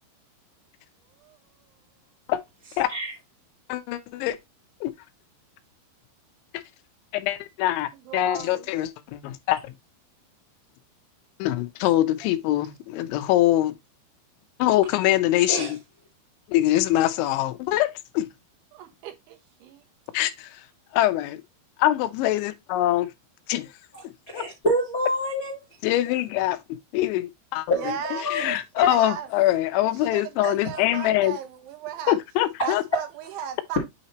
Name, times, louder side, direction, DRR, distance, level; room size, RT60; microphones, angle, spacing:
voice 1, 3.7-4.4 4.8-4.9 7.1-9.7 11.4-13.8 14.6-15.8 16.5-18.3 20.1-20.5 20.9-21.4 21.8-23.1 23.5-23.7 24.3-24.4 25.8-27.7 28.3-31.4 32.1-32.8, left 14 dB, 85° left, 3.1 m, -23 dB
voice 2, 7.9-8.7 18.7-19.8 27.7-28.3 28.8-29.3 29.8-32.2 32.6-33.8, right 9 dB, 85° right, 3.6 m, -36 dB
voice 3, 24.3-25.6 27.7-28.6, equal, 60° left, 0.9 m, -27 dB
9.0 x 4.3 x 2.9 m
omnidirectional pair, 5.3 m